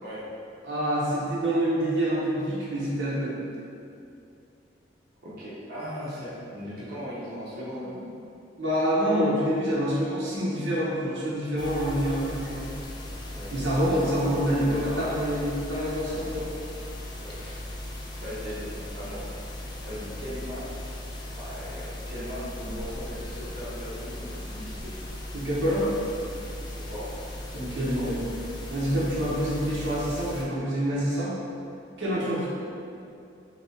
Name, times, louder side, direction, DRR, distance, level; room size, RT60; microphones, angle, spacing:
voice 1, 0.6-3.4 8.6-12.7 13.5-16.5 25.3-25.9 27.5-28.2 28.7-31.3 32.0-32.5, equal, 85° right, -8 dB, 0.9 m, -26 dB
voice 2, 5.2-7.9 13.3-13.5 13.8-15.1 17.2-17.6 18.2-19.2 19.8-21.0 21.3-24.9 26.7-27.1 27.7-28.1, equal, 55° right, -10 dB, 0.8 m, -38 dB
sound 1, 11.6-30.4, left 1 dB, 25° left, 0.3 m, -38 dB
3.3 x 2.9 x 2.7 m, 2.5 s
head